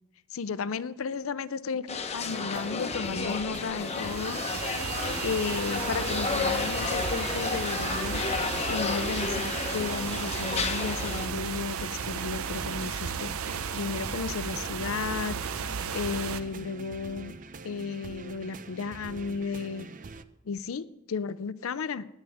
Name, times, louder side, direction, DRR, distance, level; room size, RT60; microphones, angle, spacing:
voice 1, 0.3-4.5 5.2-8.3 8.7-15.4 15.9-17.3 17.6-19.9 20.4-22.1, left 5 dB, 70° left, 16 dB, 0.5 m, -34 dB
sound 1, 1.9-11.3, left 4 dB, 30° left, 0.9 m, -32 dB
sound 2, 2.3-20.2, right 3 dB, 40° right, 0.5 m, -44 dB
sound 3, 3.7-16.4, right 7 dB, 90° right, 0.6 m, -34 dB
18.5 x 9.1 x 3.5 m, 0.96 s
head